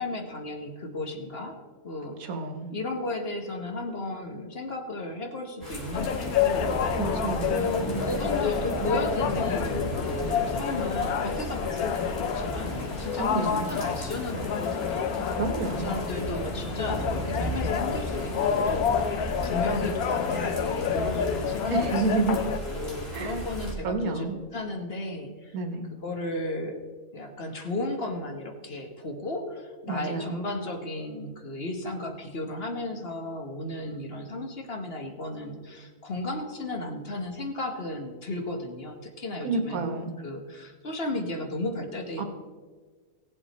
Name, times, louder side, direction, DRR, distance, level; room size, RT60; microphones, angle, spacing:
voice 1, 0.0-1.6 1.8-2.2 2.7-7.0 7.5-15.3 15.7-22.1 22.4-25.6 26.0-26.8 27.1-39.9 40.2-42.2, left 2 dB, 45° left, 3 dB, 1.3 m, -34 dB
voice 2, 2.2-2.7 7.0-7.7 13.2-13.7 15.3-16.0 21.7-22.4 23.1-23.4 23.8-24.4 25.5-25.9 29.9-30.3 39.4-40.2 42.2-42.3, right 4 dB, 75° right, 6 dB, 1.6 m, -29 dB
sound 1, 5.6-23.7, right 1 dB, 30° left, 3.0 m, -35 dB
sound 2, 5.9-22.6, left 8 dB, 85° left, 1.2 m, -29 dB
17.0 x 7.5 x 4.1 m, 1.5 s
omnidirectional pair, 1.5 m